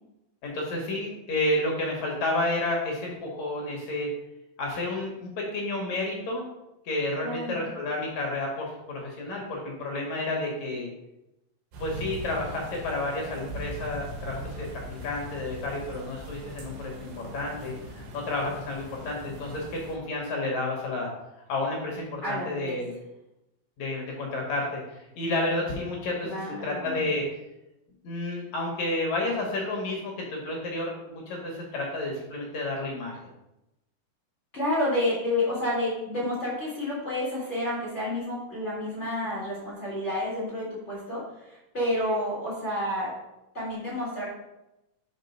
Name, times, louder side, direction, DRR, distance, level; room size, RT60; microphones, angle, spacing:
voice 1, 0.4-4.1 4.6-6.5 6.8-10.9 11.8-21.1 21.5-22.9 23.8-26.3 26.6-27.3 28.0-33.2, left 2 dB, 60° left, -1 dB, 2.1 m, -31 dB
voice 2, 7.2-7.7 22.2-22.8 26.2-27.0 34.5-43.1 43.5-44.3, left 1 dB, 30° left, -8 dB, 1.5 m, -30 dB
sound 1, 11.7-20.0, right 1 dB, 75° right, 2.9 m, -40 dB
5.2 x 5.0 x 5.3 m, 0.93 s
omnidirectional pair, 4.2 m